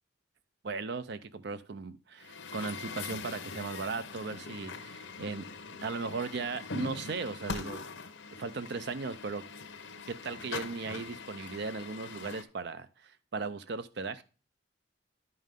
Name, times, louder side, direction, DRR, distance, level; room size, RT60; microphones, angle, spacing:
voice 1, 0.6-5.5 5.8-7.8 8.4-9.4 10.1-14.2, right 4 dB, 55° right, 12 dB, 0.5 m, -37 dB
Truck, 2.2-12.4, left 4 dB, 75° left, 1.0 m, -42 dB
10.5 x 5.5 x 3.6 m, 0.34 s
head